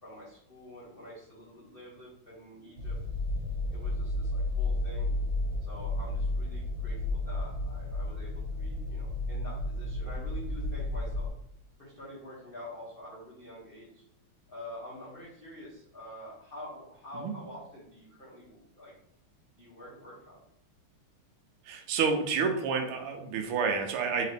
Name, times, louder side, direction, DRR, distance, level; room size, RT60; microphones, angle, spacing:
voice 1, 0.0-3.0 3.7-5.1 5.7-11.3 11.8-14.0 14.5-18.9 19.6-20.4, left 1 dB, 40° left, -8 dB, 0.8 m, -47 dB
sound 1, 2.8-11.3, left 2 dB, 70° right, 1.3 m, -32 dB
voice 2, 21.7-24.3, right 5 dB, 90° right, 4 dB, 1.5 m, -29 dB
4.0 x 2.8 x 3.3 m, 0.75 s
omnidirectional pair, 2.3 m